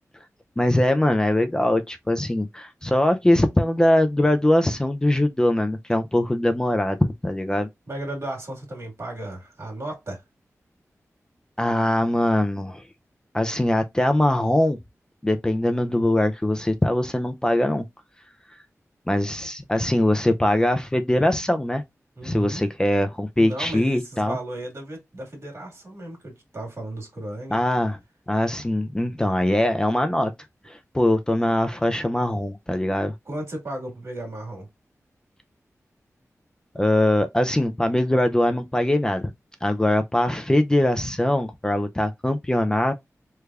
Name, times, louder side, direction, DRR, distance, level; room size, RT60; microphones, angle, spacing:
voice 1, 0.6-7.7 11.6-12.8 13.3-14.8 15.2-17.8 19.1-21.8 22.2-24.4 27.5-28.0 28.3-30.3 30.7-33.1 36.8-39.3 39.6-42.9, left 1 dB, 15° left, 0.4 m, -22 dB
voice 2, 7.9-10.2 22.2-22.6 23.4-27.6 29.2-29.3 33.2-34.7, right 1 dB, 60° right, 1.8 m, -35 dB
3.3 x 3.3 x 2.3 m
wide cardioid pair, 105°, 6 cm